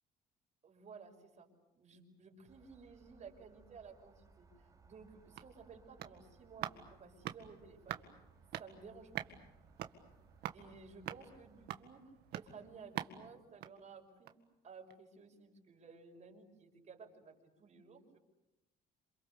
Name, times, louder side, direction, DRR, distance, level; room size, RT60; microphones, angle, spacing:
voice 1, 0.6-1.5 1.7-8.0 8.6-9.3 10.5-14.4 14.6-18.2, right 5 dB, 45° right, 3 dB, 6.1 m, -55 dB
sound 1, 2.5-11.7, right 3 dB, 20° right, 5.5 m, -65 dB
sound 2, 5.1-14.5 14.9-15.0, right 12 dB, 75° right, 1.9 m, -47 dB
28.0 x 27.5 x 6.9 m, 0.99 s
cardioid pair, 110°, 17 cm